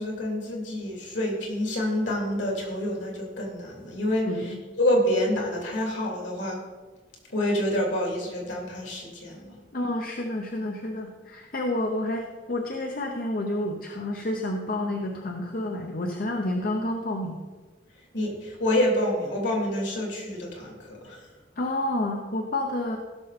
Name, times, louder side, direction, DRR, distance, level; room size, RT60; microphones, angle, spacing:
voice 1, 0.0-6.6 7.3-9.6 18.1-21.3, left 1 dB, 70° left, -1 dB, 3.3 m, -27 dB
voice 2, 4.3-4.6 9.7-17.4 21.6-23.0, left 1 dB, 50° left, 2 dB, 0.9 m, -29 dB
16.0 x 6.5 x 4.3 m, 1.3 s
head